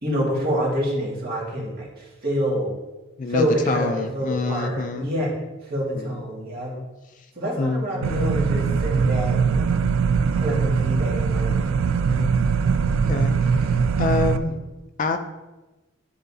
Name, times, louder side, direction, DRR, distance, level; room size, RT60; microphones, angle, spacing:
voice 1, 0.0-2.7 3.3-5.3 5.6-6.7 7.3-10.0 10.4-11.6 12.0-12.3, equal, 45° right, -4 dB, 1.8 m, -27 dB
voice 2, 3.2-5.1 6.0-6.2 6.7-6.8 7.6-8.1 13.1-13.3 13.7-14.6 15.0-15.2, left 3 dB, 40° left, 7 dB, 0.3 m, -26 dB
sound 1, 8.0-14.4, right 5 dB, 70° right, 0.3 m, -21 dB
10.0 x 3.9 x 2.7 m, 1.1 s
head